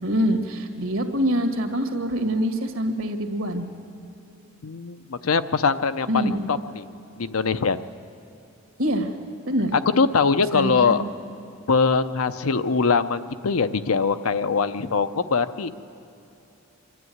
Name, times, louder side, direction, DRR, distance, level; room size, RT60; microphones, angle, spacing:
voice 1, 0.0-3.7 6.1-6.5 8.8-9.1 9.5-9.7 10.5-11.1, equal, 75° right, 6 dB, 1.9 m, -25 dB
voice 2, 4.6-6.8 7.2-7.8 9.7-11.0 11.7-15.7, left 5 dB, 80° left, 11 dB, 0.7 m, -22 dB
25.0 x 13.0 x 9.3 m, 2.9 s
head